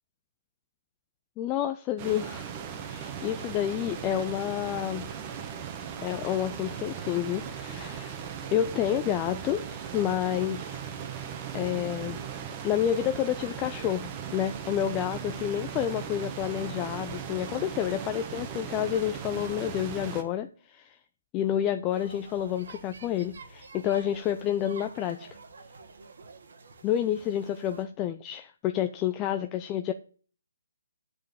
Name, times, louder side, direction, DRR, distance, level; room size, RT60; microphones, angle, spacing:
voice 1, 1.4-2.5 2.8-5.1 6.0-10.8 11.5-12.2 12.6-21.0 21.3-25.3 26.8-29.9, left 10 dB, 20° left, 7 dB, 0.4 m, -29 dB
sound 1, 2.0-20.2, right 8 dB, 25° right, 1.2 m, -38 dB
sound 2, 21.9-27.9, right 4 dB, 60° right, 1.6 m, -49 dB
7.5 x 5.4 x 6.9 m, 0.41 s
figure-of-eight pair, 145°, 0 cm